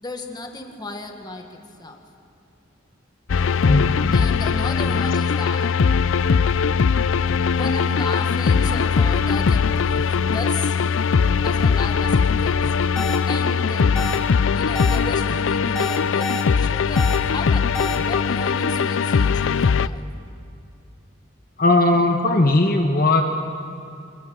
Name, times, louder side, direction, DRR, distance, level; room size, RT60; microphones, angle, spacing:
voice 1, 0.0-2.0 4.1-5.7 7.6-10.8 11.4-12.6 13.3-13.9 14.5-20.1, left 2 dB, 20° left, 3 dB, 1.7 m, -34 dB
sound 1, 3.3-19.9, left 6 dB, 75° left, 0.5 m, -20 dB
voice 2, 3.6-4.3 4.9-5.0 21.6-23.2, left 2 dB, 45° left, 4 dB, 1.3 m, -18 dB
sound 2, 13.0-13.2 14.0-14.2 14.7-15.0 15.8-16.4 17.0-17.2 17.7-18.0, left 1 dB, 5° left, 2.5 m, -29 dB
24.0 x 22.0 x 6.3 m, 2.6 s
head